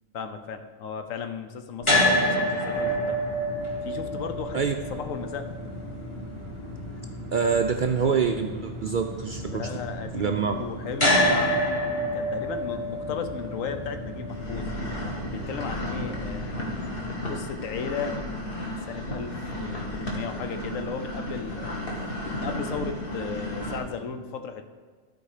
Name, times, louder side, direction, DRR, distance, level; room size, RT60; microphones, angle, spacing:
voice 1, 0.1-3.2 3.8-4.6 4.9-5.5 9.4-11.8 12.1-14.7 15.3-21.8 22.4-24.6, left 6 dB, 85° left, 8 dB, 1.1 m, -35 dB
metal-pole-staircase, 1.8-18.0, left 1 dB, 25° left, 1.6 m, -29 dB
voice 2, 7.3-9.7 10.1-10.6, right 6 dB, 70° right, 5 dB, 0.4 m, -25 dB
Old Record Player Effect, 14.3-23.8, left 1 dB, 45° left, 1.7 m, -34 dB
12.5 x 4.5 x 4.9 m, 1.5 s
omnidirectional pair, 1.3 m